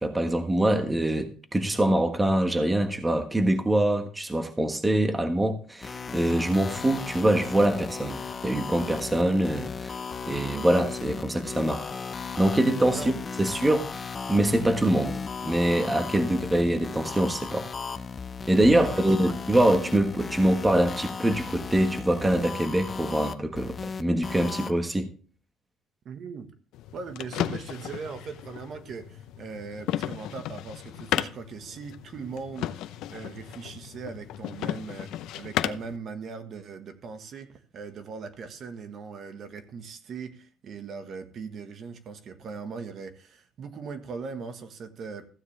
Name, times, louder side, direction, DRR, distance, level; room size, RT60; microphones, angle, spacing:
voice 1, 0.0-10.0 10.3-11.9 12.4-13.9 14.3-17.7 18.5-25.1, right 1 dB, 10° right, 6 dB, 1.4 m, -24 dB
sound 1, 5.8-24.7, left 5 dB, 25° left, 0.8 m, -36 dB
voice 2, 18.7-19.3 26.0-26.5 26.9-32.7 33.1-45.3, right 5 dB, 50° right, 8 dB, 1.5 m, -39 dB
sound 2, 26.7-36.0, left 12 dB, 75° left, 0.7 m, -34 dB
15.0 x 9.5 x 3.4 m, 0.41 s
cardioid pair, 125°, 0 cm